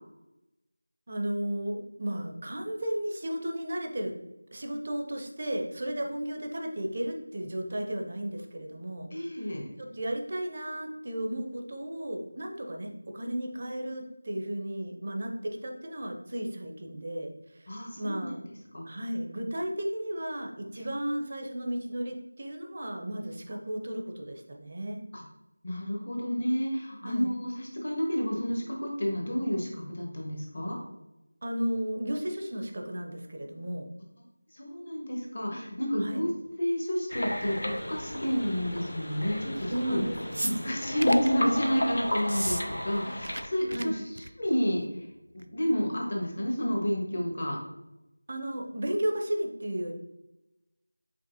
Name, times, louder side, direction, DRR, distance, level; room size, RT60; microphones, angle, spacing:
voice 1, 1.1-4.1 4.5-9.1 9.8-17.3 17.9-18.4 18.9-25.0 27.0-27.3 31.4-33.9 36.0-36.2 39.7-40.6 43.7-44.0 48.3-49.9, right 1 dB, 35° right, 2 dB, 0.6 m, -34 dB
voice 2, 9.1-9.6 17.7-18.3 18.7-18.8 20.8-20.9 25.1-25.2 25.6-30.8 34.5-36.3 36.6-40.0 40.4-44.0 44.4-45.1 45.3-47.6, equal, 45° left, -1 dB, 1.3 m, -30 dB
sound 1, 37.1-43.5, left 1 dB, 70° left, 0.7 m, -33 dB
sound 2, 40.3-41.3 42.2-42.6 42.9-43.4 43.7-43.8 44.2-44.5 45.4-45.5, right 1 dB, 80° right, 0.3 m, -34 dB
5.2 x 3.7 x 2.7 m, 0.94 s
figure-of-eight pair, 170°, 0 cm